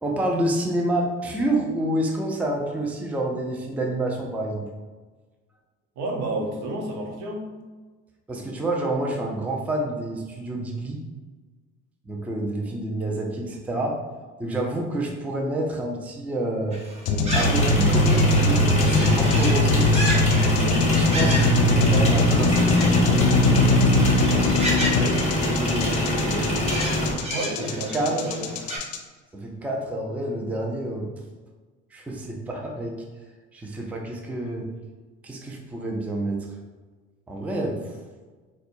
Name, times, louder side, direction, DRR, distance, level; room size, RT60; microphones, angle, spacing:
voice 1, 0.0-4.7 8.3-11.0 12.1-14.0 14.4-16.8 17.3-19.9 20.7-24.1 25.5-26.8 27.9-28.2 29.3-31.1 31.9-33.0 33.5-34.7 35.2-36.5 37.3-38.0, right 1 dB, 5° right, 0 dB, 0.4 m, -28 dB
voice 2, 6.0-7.5 20.5-20.9 24.8-25.2 27.3-28.5, right 2 dB, 65° right, 0 dB, 0.9 m, -31 dB
sound 1, 16.7-28.8, equal, 20° right, 0.9 m, -34 dB
sound 2, 17.1-29.0, left 2 dB, 75° left, 0.5 m, -21 dB
sound 3, 17.3-27.1, equal, 20° left, 1.1 m, -25 dB
4.2 x 2.2 x 2.6 m, 1.4 s
supercardioid pair, 85°, 31 cm